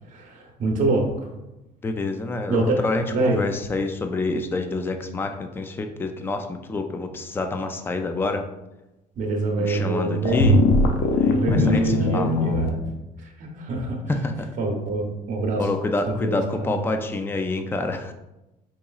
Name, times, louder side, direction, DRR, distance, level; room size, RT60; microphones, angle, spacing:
voice 1, 0.1-1.3 2.5-2.8 3.1-3.4 9.2-10.4 11.2-12.8 13.2-14.0 14.6-15.7 16.0-16.7, right 2 dB, 50° right, 0 dB, 0.7 m, -25 dB
voice 2, 1.8-8.4 9.6-10.6 11.1-12.3 14.1-14.5 15.6-18.1, left 2 dB, 15° left, 6 dB, 0.3 m, -27 dB
sound 1, 10.2-12.7, left 2 dB, 90° left, 0.5 m, -20 dB
4.6 x 2.9 x 2.3 m, 0.97 s
cardioid pair, 110°, 17 cm